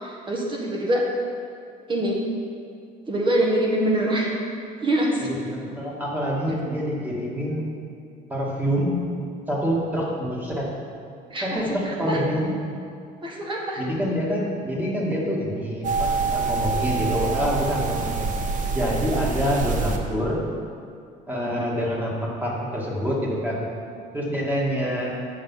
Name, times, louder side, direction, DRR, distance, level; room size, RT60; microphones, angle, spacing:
voice 1, 0.0-1.0 1.9-2.2 3.1-4.3 4.8-5.3 11.3-12.2 13.2-13.8, right 1 dB, 30° right, -2 dB, 1.5 m, -24 dB
voice 2, 5.2-7.6 8.3-9.0 9.5-10.7 11.4-12.5 13.8-18.3 18.7-20.4 21.3-23.6 24.1-25.1, equal, 10° right, -4 dB, 2.2 m, -26 dB
sound 1, 15.8-20.0, right 4 dB, 50° right, 1.0 m, -26 dB
8.6 x 6.9 x 5.7 m, 2.3 s
cardioid pair, 125°, 17 cm